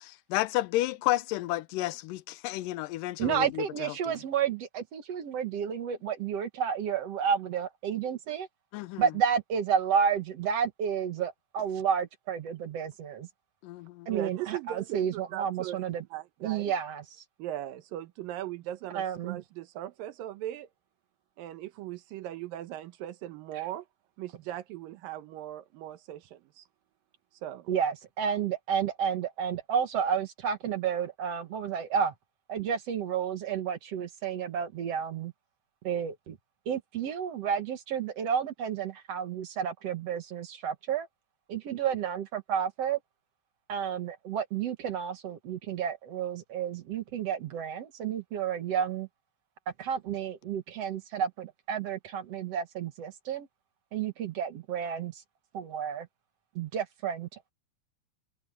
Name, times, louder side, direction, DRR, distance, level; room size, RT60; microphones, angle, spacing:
voice 1, 0.0-4.1 8.7-9.0 13.6-14.1, left 17 dB, 80° left, 2.1 m, -31 dB
voice 2, 3.2-8.5 9.0-13.3 14.1-16.0 16.4-17.2 18.9-19.4 23.5-23.6 27.7-32.1 32.5-35.3 35.8-36.4 36.7-41.1 41.5-43.0 43.7-49.1 49.8-53.5 53.9-55.2 55.5-56.1 56.6-57.5, right 7 dB, 55° right, 2.0 m, -31 dB
voice 3, 14.1-16.7 17.4-20.7 21.4-23.9 24.2-26.6 27.4-27.7, right 13 dB, 85° right, 2.7 m, -39 dB
omnidirectional pair, 3.9 m